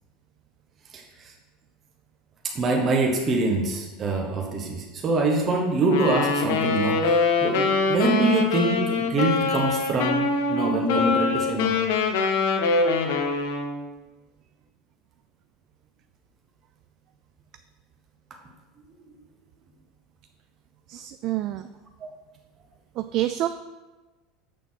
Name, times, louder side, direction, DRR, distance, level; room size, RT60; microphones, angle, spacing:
voice 1, 0.9-1.3 2.5-11.7 22.0-22.1, right 2 dB, 35° right, 0 dB, 1.2 m, -25 dB
Wind instrument woodwind instrument, 5.8-13.8, left 4 dB, 75° left, 1.0 m, -24 dB
voice 2, 20.9-21.7 23.0-23.5, right 14 dB, 55° right, 10 dB, 0.3 m, -27 dB
6.8 x 6.0 x 5.6 m, 1.2 s
supercardioid pair, 115°, 0 cm